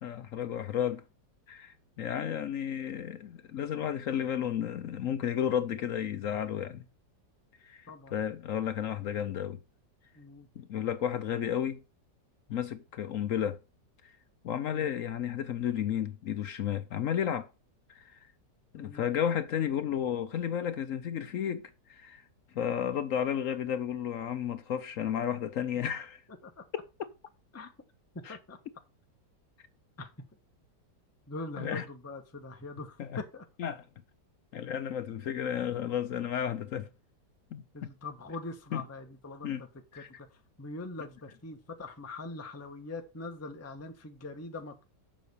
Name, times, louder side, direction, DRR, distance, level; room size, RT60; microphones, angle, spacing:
voice 1, 0.0-1.0 1.5-6.8 7.6-9.6 10.6-11.8 12.5-13.6 14.0-14.1 14.4-17.5 17.9-18.2 18.7-22.2 22.5-26.2 28.2-28.4 31.6-31.8 33.0-33.2 33.6-33.8 34.5-36.9 37.5-37.9 38.7-38.8 39.4-39.7 39.9-40.1, left 9 dB, 65° left, 0.8 m, -32 dB
voice 2, 7.9-8.2 10.1-10.5 18.8-19.0 26.4-26.6 27.5-27.7 28.3-28.6 30.0-30.1 31.3-33.4 37.7-39.5 39.9-40.3 40.6-44.8, left 2 dB, 10° left, 0.9 m, -42 dB
7.5 x 5.4 x 6.7 m
omnidirectional pair, 1.9 m